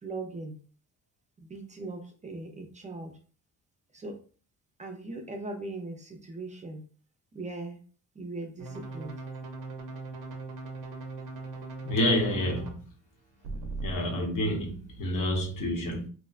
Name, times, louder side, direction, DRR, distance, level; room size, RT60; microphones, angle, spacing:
voice 1, 0.0-0.6 1.4-3.1 3.9-4.2 4.8-6.8 7.3-7.8 8.2-9.1, right 2 dB, 25° right, 0.4 m, -39 dB
sound 1, 8.6-12.7 13.4-14.0, right 3 dB, 75° right, 0.6 m, -39 dB
voice 2, 11.8-12.7 13.8-16.1, equal, 75° left, 0.9 m, -28 dB
2.8 x 2.2 x 2.3 m
cardioid pair, 115°, 32 cm